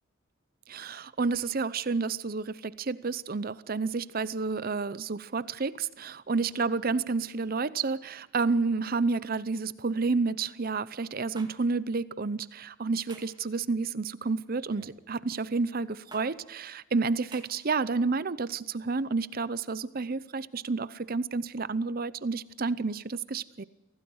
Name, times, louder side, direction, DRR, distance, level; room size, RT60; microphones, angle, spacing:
voice 1, 0.7-23.6, right 4 dB, 50° right, 0.7 m, -30 dB
sound 1, 11.3-11.5 13.1-13.4 14.7-15.0 16.1-16.3 17.3-17.5, right 4 dB, 25° right, 2.3 m, -47 dB
25.0 x 16.5 x 6.4 m
head